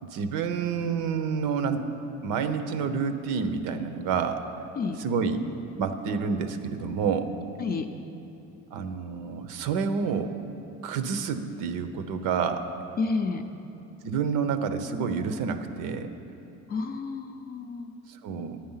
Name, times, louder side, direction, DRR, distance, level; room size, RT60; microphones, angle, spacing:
voice 1, 0.0-1.9 2.2-4.4 5.0-5.4 5.8-7.3 8.7-10.3 10.8-12.6 14.0-16.1 18.1-18.6, right 6 dB, 85° right, 9 dB, 0.8 m, -28 dB
voice 2, 13.0-13.4 16.7-17.9, left 4 dB, 30° left, 5 dB, 0.4 m, -30 dB
10.0 x 9.4 x 5.6 m, 2.8 s
cardioid pair, 150°, 30 cm